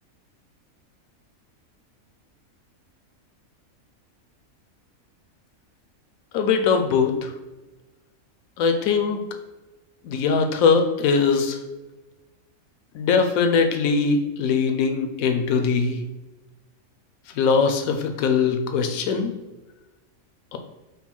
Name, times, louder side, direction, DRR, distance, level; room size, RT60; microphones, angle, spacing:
voice 1, 6.3-7.3 8.6-9.2 10.0-11.6 12.9-16.0 17.4-19.3 20.5-20.6, left 5 dB, 80° left, 6 dB, 1.0 m, -21 dB
5.3 x 2.2 x 4.4 m, 1.1 s
omnidirectional pair, 1.5 m